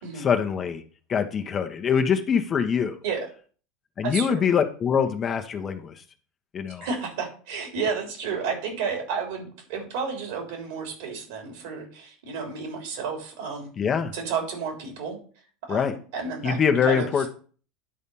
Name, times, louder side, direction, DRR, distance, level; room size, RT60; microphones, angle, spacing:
voice 1, 0.2-0.8 1.1-3.0 4.0-5.9 6.5-6.9 13.8-14.1 15.7-15.9 16.4-17.3, left 7 dB, 35° left, 6 dB, 1.2 m, -24 dB
voice 2, 4.0-4.4 6.8-13.7 14.1-15.2 15.7-16.6 16.8-17.1, right 5 dB, 75° right, 2 dB, 3.3 m, -31 dB
9.9 x 4.3 x 5.5 m, 0.42 s
hypercardioid pair, 90°, 0 cm